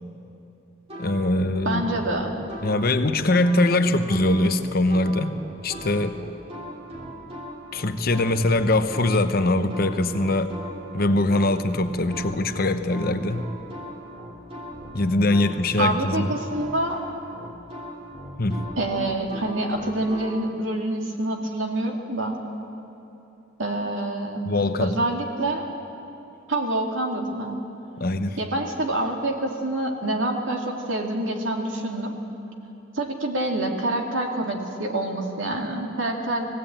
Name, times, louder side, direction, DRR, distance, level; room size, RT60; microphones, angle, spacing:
sound 1, 0.9-20.3, equal, 30° right, 3.1 m, -38 dB
voice 1, 1.0-1.8 2.6-5.4 5.6-6.2 7.7-10.5 10.9-13.4 14.9-16.3 18.4-18.6 24.5-24.9 28.0-28.4, left 2 dB, 50° left, 9 dB, 0.9 m, -22 dB
voice 2, 1.6-2.3 15.8-17.0 18.8-22.4 23.6-24.4 24.8-25.6 26.5-27.6 28.4-32.2 32.9-36.5, right 1 dB, 75° right, 1 dB, 2.3 m, -26 dB
19.0 x 16.5 x 8.8 m, 2.9 s
head